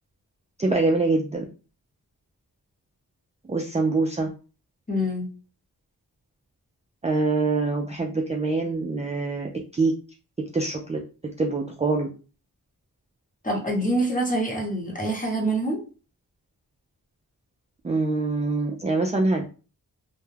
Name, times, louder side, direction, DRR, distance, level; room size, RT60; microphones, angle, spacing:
voice 1, 0.6-1.4 3.5-4.3 7.0-9.9 10.5-11.0 11.4-12.1 17.8-19.5, right 3 dB, 20° right, 2 dB, 0.4 m, -24 dB
voice 2, 4.9-5.3 13.4-15.8, right 1 dB, 20° left, -1 dB, 1.0 m, -25 dB
2.2 x 2.2 x 3.2 m, 0.35 s
wide cardioid pair, 65°, 39 cm